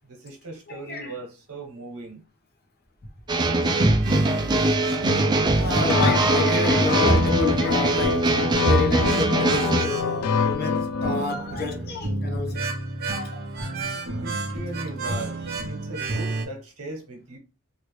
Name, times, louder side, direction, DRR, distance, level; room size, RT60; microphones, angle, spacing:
voice 1, 0.1-2.2 14.2-17.4, right 2 dB, 80° right, 1.1 m, -39 dB
voice 2, 0.7-1.1 5.5-8.4 8.6-12.7 13.1-13.3, left 3 dB, 45° left, 0.8 m, -29 dB
sound 1, 3.3-9.9, right 2 dB, 20° right, 0.3 m, -22 dB
sound 2, 3.6-16.5, right 2 dB, 40° right, 0.7 m, -31 dB
sound 3, 5.9-11.2, left 7 dB, 75° left, 0.4 m, -26 dB
3.1 x 2.5 x 3.1 m
head